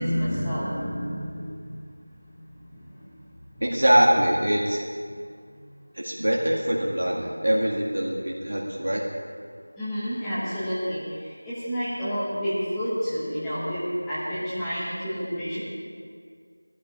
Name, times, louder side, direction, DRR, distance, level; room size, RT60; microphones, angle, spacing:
voice 1, 0.0-3.2 3.5-3.6 5.5-5.6 9.8-15.6, equal, 5° left, -13 dB, 1.1 m, -30 dB
voice 2, 3.6-4.8 6.0-9.0, equal, 55° right, -3 dB, 1.9 m, -23 dB
14.5 x 11.5 x 4.9 m, 2.1 s
figure-of-eight pair, 180°, 0 cm